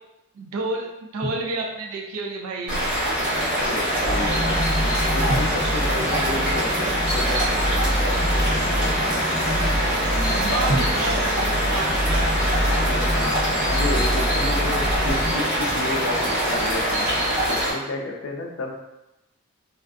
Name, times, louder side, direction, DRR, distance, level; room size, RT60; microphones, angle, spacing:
voice 1, 0.4-2.8 10.4-12.4, right 2 dB, 85° right, 1 dB, 0.4 m, -30 dB
Drum, 1.2-2.3 5.3-7.1 10.7-12.7, right 1 dB, 60° right, 0.8 m, -33 dB
sound 1, 2.7-17.7, equal, 40° right, 1.4 m, -24 dB
voice 2, 3.6-10.2 12.7-13.4 13.7-17.1 17.5-18.7, left 2 dB, 60° left, 1 dB, 0.4 m, -32 dB
sound 2, 4.0-15.3, equal, 15° right, 0.6 m, -26 dB
3.3 x 2.4 x 2.5 m, 0.96 s
head